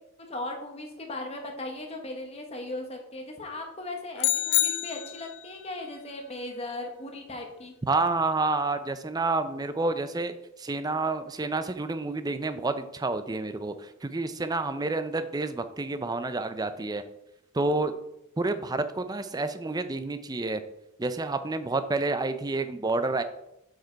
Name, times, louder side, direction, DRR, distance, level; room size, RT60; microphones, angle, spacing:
voice 1, 0.3-7.7, left 2 dB, 25° left, 2 dB, 1.2 m, -37 dB
sound 1, 4.2-5.5, left 14 dB, 50° left, 0.3 m, -27 dB
voice 2, 7.9-17.0 17.5-17.9 18.4-20.6 21.0-23.2, right 3 dB, 15° right, 10 dB, 0.4 m, -29 dB
7.5 x 4.9 x 4.5 m, 0.85 s
head